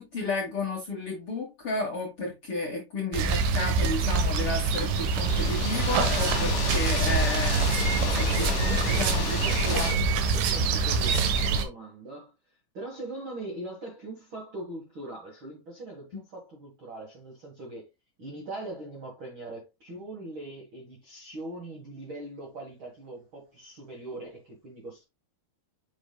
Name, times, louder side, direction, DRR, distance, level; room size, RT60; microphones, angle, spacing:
voice 1, 0.0-7.7 8.1-9.9, left 2 dB, 75° left, 1.2 m, -32 dB
sound 1, 3.1-11.6, right 4 dB, 70° right, 2.7 m, -25 dB
sound 2, 5.0-10.0, left 6 dB, 50° left, 2.3 m, -32 dB
voice 2, 8.4-12.3 12.7-17.9 18.2-25.0, right 2 dB, 85° right, 1.1 m, -41 dB
7.9 x 6.3 x 2.3 m
omnidirectional pair, 5.2 m